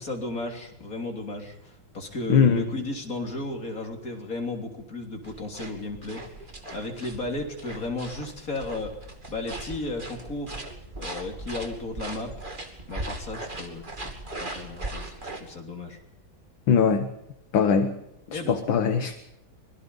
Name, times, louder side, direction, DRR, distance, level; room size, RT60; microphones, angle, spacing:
voice 1, 0.0-9.0 9.3-10.7 11.0-12.3 12.9-14.1 14.4-16.0 18.3-18.6, left 2 dB, 40° left, 3 dB, 3.6 m, -34 dB
voice 2, 2.3-2.7 16.7-17.1 17.5-18.0 18.3-19.2, left 6 dB, 70° left, 7 dB, 2.1 m, -21 dB
sound 1, 5.2-15.4, right 2 dB, 25° right, 2.6 m, -39 dB
25.5 x 22.0 x 5.4 m, 0.82 s
omnidirectional pair, 2.2 m